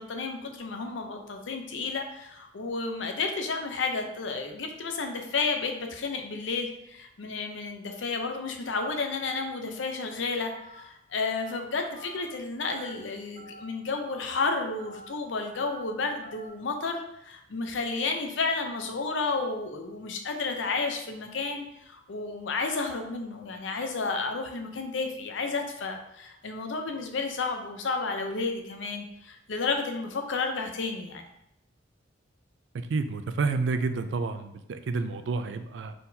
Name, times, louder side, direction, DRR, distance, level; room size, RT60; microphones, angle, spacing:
voice 1, 0.0-31.3, left 4 dB, 85° left, 5 dB, 0.6 m, -32 dB
Telephone, 10.5-10.8 11.2-11.5 11.9-12.2 12.6-12.9 13.4-13.6 14.1-14.3 14.8-15.1 15.5-15.8 16.2-16.5, right 1 dB, 40° right, 1.3 m, -47 dB
voice 2, 32.9-35.9, right 4 dB, 70° right, 9 dB, 0.4 m, -29 dB
4.2 x 3.8 x 2.7 m, 0.81 s
head